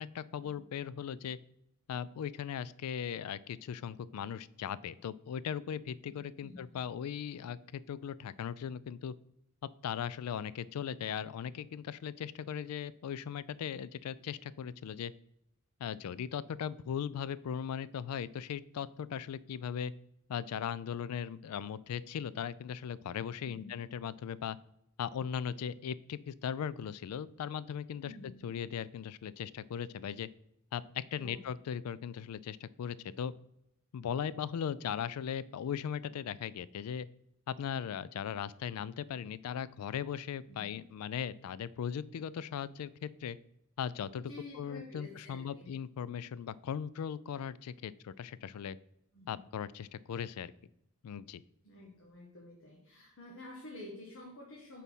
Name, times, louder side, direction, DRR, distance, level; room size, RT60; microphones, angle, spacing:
voice 1, 0.0-1.4 1.9-9.1 9.8-15.1 15.8-19.9 20.3-24.6 25.0-30.3 30.7-33.3 33.9-37.1 37.5-43.4 43.8-48.8 49.3-50.5 51.0-51.4, left 8 dB, 85° left, 18 dB, 0.3 m, -38 dB
voice 2, 6.1-6.8 23.4-23.8 28.0-28.5 31.2-31.5 40.5-40.8 44.2-45.7 49.1-49.3 51.6-54.8, left 2 dB, 60° left, -2 dB, 1.3 m, -50 dB
6.2 x 4.1 x 5.4 m, 0.78 s
head